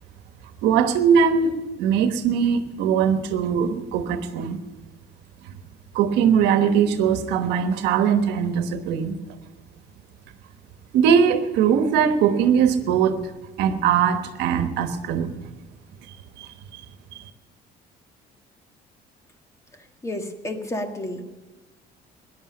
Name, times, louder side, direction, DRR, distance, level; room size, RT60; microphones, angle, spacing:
voice 1, 0.6-1.5 1.8-4.6 5.9-9.2 10.9-13.2 13.6-15.3 16.4-16.5, right 7 dB, 90° right, 9 dB, 1.2 m, -20 dB
voice 2, 20.0-21.2, left 1 dB, 15° left, 6 dB, 1.6 m, -30 dB
14.0 x 10.5 x 8.6 m, 1.2 s
cardioid pair, 110°, 17 cm